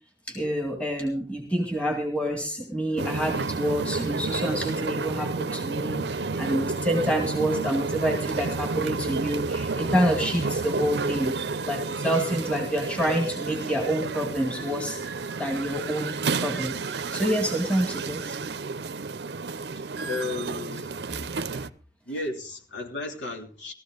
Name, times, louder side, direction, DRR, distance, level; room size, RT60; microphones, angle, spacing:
voice 1, 0.3-11.3 11.7-15.0 15.4-16.1 16.4-18.4 21.1-21.7, equal, 5° left, 2.3 m, -28 dB
sound 1, 3.0-21.7, right 4 dB, 65° right, 0.6 m, -31 dB
voice 2, 19.7-21.1 22.1-23.7, left 3 dB, 80° left, 3.2 m, -34 dB
16.5 x 14.0 x 3.9 m
head